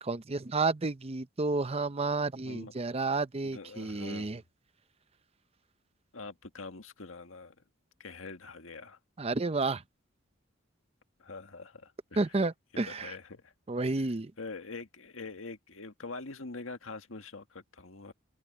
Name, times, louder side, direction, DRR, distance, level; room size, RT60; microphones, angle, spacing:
voice 1, 0.0-4.4 9.2-9.8 12.2-13.1 13.7-14.3, right 3 dB, 30° right, 0.7 m, -31 dB
voice 2, 3.4-4.4 6.1-7.6 8.0-9.0 11.2-12.2 12.9-13.5 14.4-18.1, left 3 dB, 85° left, 1.8 m, -44 dB
head